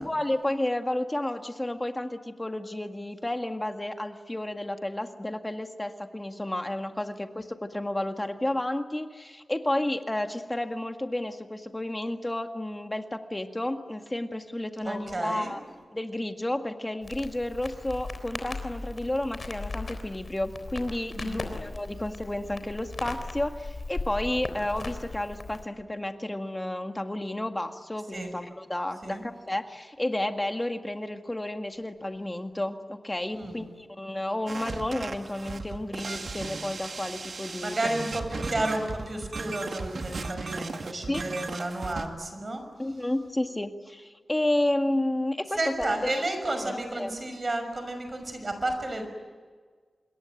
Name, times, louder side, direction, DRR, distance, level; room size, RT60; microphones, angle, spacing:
voice 1, 0.0-15.6 15.9-37.8 41.1-41.3 42.8-46.1 46.5-47.1, left 1 dB, 15° left, 6 dB, 1.9 m, -31 dB
voice 2, 14.8-15.5 21.1-21.6 28.1-28.3 29.0-29.3 33.3-33.7 37.6-42.6 45.5-49.1, right 2 dB, 35° right, 6 dB, 5.9 m, -32 dB
Crackle, 17.0-25.7, left 3 dB, 45° left, 3.7 m, -38 dB
sound 1, 34.5-42.1, right 3 dB, 65° right, 2.2 m, -36 dB
27.0 x 22.0 x 9.2 m, 1.5 s
wide cardioid pair, 105°, 0 cm